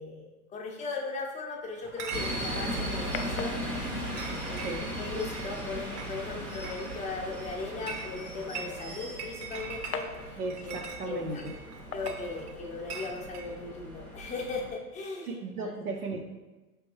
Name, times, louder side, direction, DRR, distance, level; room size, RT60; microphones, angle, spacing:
voice 1, 0.0-3.6 4.4-10.7 11.0-11.4 11.9-15.7, left 3 dB, 15° left, 0 dB, 0.7 m, -38 dB
Chatter / Chink clink, 1.8-13.5, right 5 dB, 40° right, 0.7 m, -44 dB
sound 1, 2.1-14.7, equal, 10° right, 0.3 m, -38 dB
sound 2, 2.2-13.2, left 5 dB, 70° left, 0.6 m, -46 dB
voice 2, 10.4-11.5 15.3-16.2, right 3 dB, 75° right, 3 dB, 0.7 m, -36 dB
5.1 x 3.4 x 3.0 m, 1.2 s
figure-of-eight pair, 100°, 45 cm